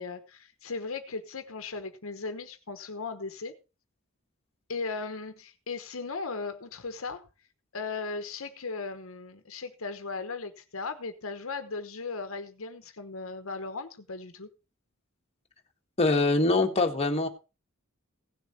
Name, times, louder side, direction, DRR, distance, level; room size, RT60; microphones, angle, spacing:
voice 1, 0.0-3.5 4.7-7.2 7.7-14.5, left 4 dB, 75° left, 1.1 m, -37 dB
voice 2, 16.0-17.3, left 2 dB, 30° left, 1.7 m, -23 dB
16.5 x 6.9 x 4.3 m
head